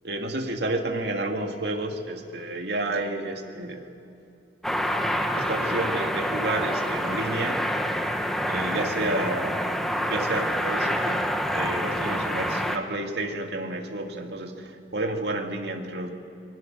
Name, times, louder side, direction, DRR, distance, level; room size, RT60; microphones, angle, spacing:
voice 1, 0.0-3.9 5.4-7.6 8.5-9.6 10.1-16.1, right 2 dB, 70° right, 3 dB, 2.3 m, -30 dB
sound 1, 4.6-12.8, equal, ahead, 1.1 m, -27 dB
27.5 x 24.0 x 6.4 m, 2.6 s
head